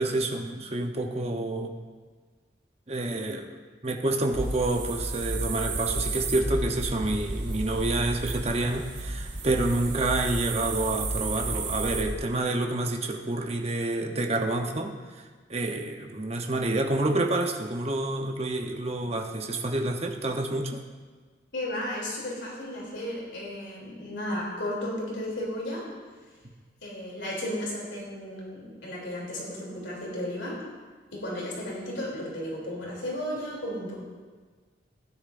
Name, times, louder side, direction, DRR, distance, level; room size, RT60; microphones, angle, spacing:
voice 1, 0.0-1.7 2.9-3.5 3.8-14.9 15.5-20.8, right 2 dB, 35° right, 2 dB, 0.9 m, -28 dB
sound 1, 4.3-12.2, right 2 dB, 70° right, 1.2 m, -32 dB
voice 2, 21.5-25.8 26.8-30.5 31.1-34.0, left 1 dB, 80° left, -4 dB, 3.1 m, -34 dB
16.0 x 10.0 x 2.6 m, 1.4 s
head